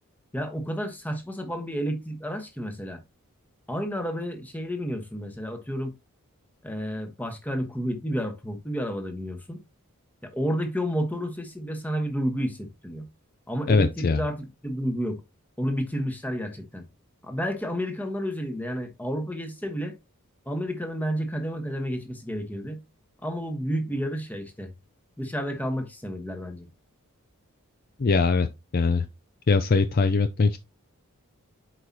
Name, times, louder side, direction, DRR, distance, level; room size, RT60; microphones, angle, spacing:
voice 1, 0.3-3.0 3.7-5.9 6.6-9.6 10.2-13.1 13.5-15.2 15.6-16.8 17.2-20.0 20.4-22.8 23.2-24.7 25.2-26.7, equal, 10° left, 1.1 m, -31 dB
voice 2, 13.7-14.2 28.0-28.5 28.7-29.1 29.5-30.6, left 4 dB, 40° left, 0.4 m, -21 dB
7.7 x 4.8 x 2.8 m
head